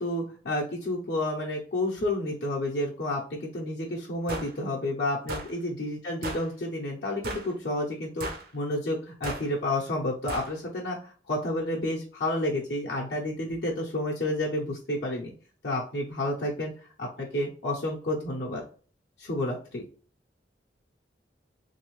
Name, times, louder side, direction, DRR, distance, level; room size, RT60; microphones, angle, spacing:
voice 1, 0.0-15.3 15.6-18.6 19.2-19.8, left 1 dB, 60° left, -4 dB, 0.6 m, -30 dB
sound 1, 4.3-4.5 5.3-5.5 6.2-6.5 7.2-7.5 8.2-8.5 9.2-9.5 10.3-10.5, right 2 dB, 55° right, 0.6 m, -35 dB
3.4 x 2.7 x 3.0 m, 0.42 s
head